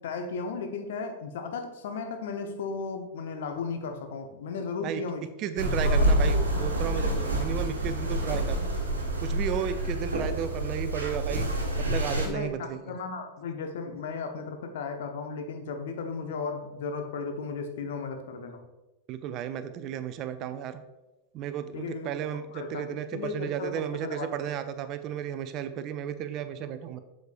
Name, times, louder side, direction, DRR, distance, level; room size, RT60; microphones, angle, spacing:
voice 1, 0.0-5.3 5.7-6.7 12.2-18.6 21.7-22.2 22.5-24.3, left 4 dB, 55° left, 6 dB, 0.8 m, -35 dB
voice 2, 5.4-8.6 9.2-11.5 11.8-12.8 19.1-20.8 21.3-27.0, right 9 dB, 35° right, 11 dB, 0.4 m, -33 dB
sound 1, 5.6-12.3, right 1 dB, 75° right, 1.2 m, -27 dB
8.0 x 6.4 x 2.4 m, 1.1 s
figure-of-eight pair, 90°, 0 cm